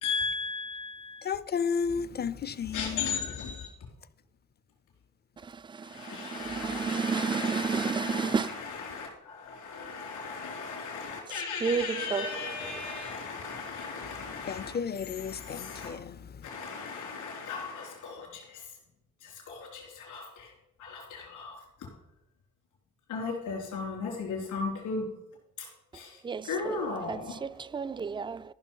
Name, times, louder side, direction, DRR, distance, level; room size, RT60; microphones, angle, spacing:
voice 1, 0.0-1.3 2.7-3.7 5.8-14.7 15.0-15.9 16.4-18.7 19.2-20.5 20.8-21.6 23.1-25.1 25.6-25.7 25.9-26.2 26.4-27.4, left 5 dB, 80° left, 3.7 m, -36 dB
voice 2, 1.3-2.9 14.5-16.0, left 6 dB, 35° left, 0.5 m, -32 dB
voice 3, 6.1-8.5 11.6-12.3 26.2-26.5 27.1-28.4, right 5 dB, 15° right, 0.3 m, -31 dB
14.0 x 6.0 x 5.5 m
cardioid pair, 90°, 30 cm